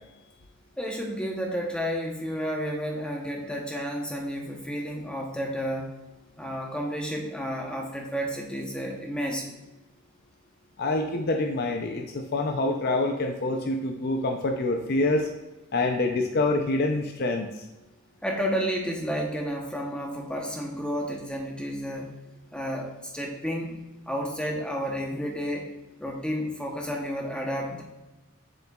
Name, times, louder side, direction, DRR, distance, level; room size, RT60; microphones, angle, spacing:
voice 1, 0.8-5.9 6.4-9.5 18.2-22.2 22.5-23.8 24.1-25.7 26.0-27.8, equal, 5° left, 0 dB, 0.8 m, -31 dB
voice 2, 10.8-15.3 15.7-17.6, left 2 dB, 45° left, 4 dB, 0.5 m, -26 dB
7.7 x 7.0 x 2.3 m, 1.0 s
head